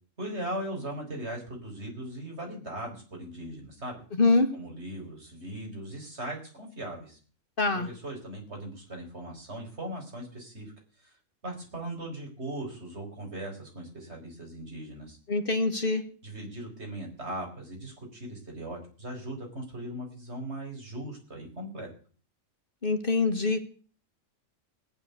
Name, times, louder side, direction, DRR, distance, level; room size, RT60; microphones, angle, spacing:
voice 1, 0.2-4.0 4.5-7.2 7.7-10.7 11.0-11.1 11.4-15.2 16.2-21.9, right 1 dB, 55° right, 1 dB, 5.0 m, -39 dB
voice 2, 4.2-4.5 7.6-7.9 15.3-16.0 22.8-23.6, left 3 dB, 45° left, 8 dB, 1.6 m, -24 dB
17.5 x 9.8 x 8.1 m, 0.43 s
omnidirectional pair, 1.3 m